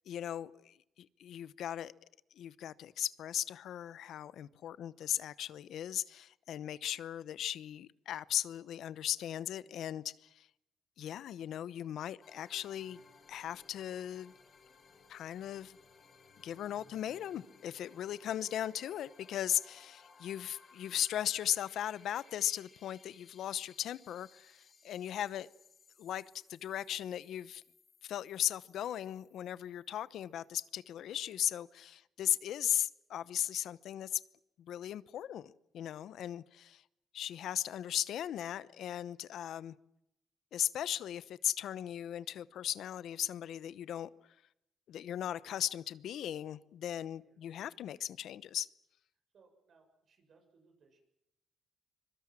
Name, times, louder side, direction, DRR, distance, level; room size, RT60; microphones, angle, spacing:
voice 1, 0.1-1.9 2.4-10.5 11.0-13.0 13.3-14.3 15.1-15.8 16.4-25.5 26.0-26.2 26.5-27.6 28.0-34.2 34.6-36.8 37.1-39.7 40.5-44.1 44.9-48.7, left 11 dB, 80° left, 0.9 m, -37 dB
sound 1, 12.2-30.7, left 5 dB, 45° left, 5.4 m, -62 dB
voice 2, 46.9-47.4 49.3-51.0, right 4 dB, 60° right, 6.8 m, -68 dB
24.5 x 23.5 x 7.6 m
cardioid pair, 100°, 0 cm